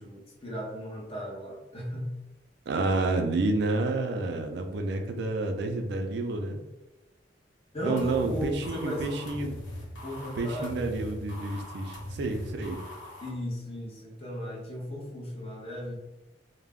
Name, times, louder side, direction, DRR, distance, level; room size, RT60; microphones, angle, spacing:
voice 1, 0.0-2.1 7.7-9.5 10.0-10.8 13.2-16.0, equal, 30° left, -2 dB, 0.7 m, -36 dB
voice 2, 2.7-6.6 7.8-9.6 10.4-12.8, right 2 dB, 60° right, 4 dB, 0.3 m, -29 dB
sound 1, 8.0-13.3, equal, 85° left, 0.8 m, -41 dB
2.3 x 2.0 x 3.4 m, 1.0 s
head